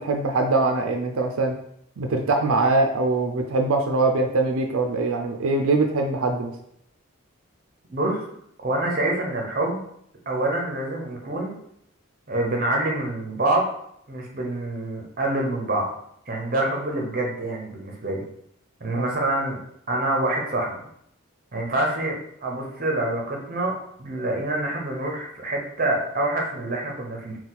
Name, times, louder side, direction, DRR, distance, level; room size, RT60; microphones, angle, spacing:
voice 1, 0.0-1.5 2.0-6.5 18.9-19.1, right 3 dB, 90° right, 4 dB, 0.5 m, -22 dB
voice 2, 7.9-8.2 8.6-9.8 10.3-11.6 12.3-13.7 14.1-15.9 16.3-18.2 18.8-19.6 19.9-20.8 21.5-22.2 22.4-27.4, right 2 dB, 40° right, 0 dB, 0.8 m, -26 dB
4.0 x 2.3 x 4.0 m, 0.71 s
head